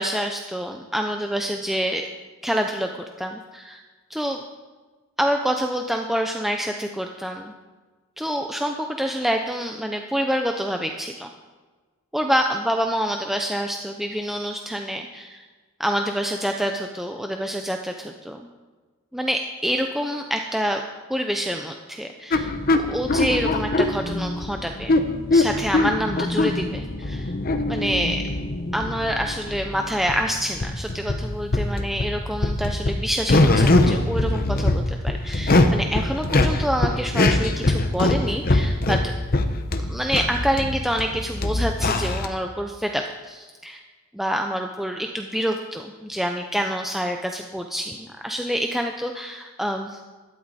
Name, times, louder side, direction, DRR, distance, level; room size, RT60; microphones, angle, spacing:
voice 1, 0.0-2.1 2.4-2.9 3.2-3.8 4.1-4.4 5.2-7.5 8.2-11.3 12.1-15.4 15.8-18.4 19.1-20.8 21.1-25.0 25.3-27.3 27.7-28.2 28.7-39.0 39.8-43.8 44.1-50.0, equal, ahead, 3 dB, 0.5 m, -27 dB
sound 1, 22.3-42.3, left 2 dB, 45° left, 0.8 m, -23 dB
13.0 x 12.0 x 4.1 m, 1.4 s
head